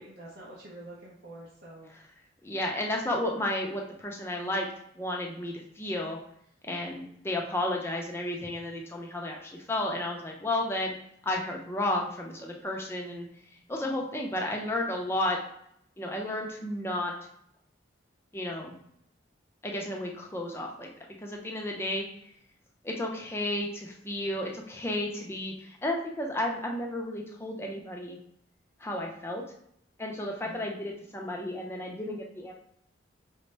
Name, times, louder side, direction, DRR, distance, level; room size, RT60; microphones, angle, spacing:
voice 1, 0.0-1.9 13.6-14.0 30.4-30.6, right 1 dB, 55° right, -6 dB, 0.8 m, -48 dB
voice 2, 2.4-4.7 5.0-6.2 6.7-11.0 11.2-13.3 13.7-15.4 16.0-17.1 18.3-18.8 19.6-20.9 21.2-22.0 22.8-28.2 28.8-29.4 30.0-32.5, left 1 dB, 10° left, 0 dB, 0.5 m, -32 dB
5.1 x 2.0 x 3.2 m, 0.72 s
head